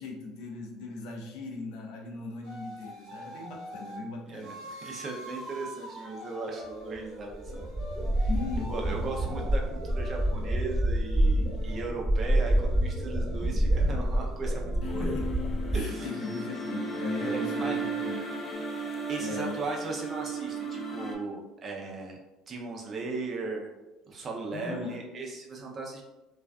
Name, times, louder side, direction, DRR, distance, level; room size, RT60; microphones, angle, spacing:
voice 1, 0.0-4.6 4.8-4.9 8.3-8.9 14.8-15.4 15.7-18.3 19.2-19.6 24.5-25.0 25.7-25.8, left 3 dB, 75° left, 1 dB, 0.5 m, -39 dB
sound 1, 2.4-4.0 4.4-11.8 12.2-18.5, equal, 85° right, 1.1 m, -46 dB
voice 2, 4.8-7.7 8.2-8.3 8.7-15.0 15.7-16.2 17.2-17.8 19.1-22.2 22.5-23.7 24.0-26.0, right 3 dB, 40° right, 0 dB, 0.5 m, -37 dB
sound 2, 7.0-7.1 7.3-15.8, right 1 dB, 10° right, 1.0 m, -27 dB
sound 3, 14.8-21.1, right 2 dB, 30° left, 0.7 m, -34 dB
2.5 x 2.3 x 2.2 m, 1.1 s
supercardioid pair, 80°, 0 cm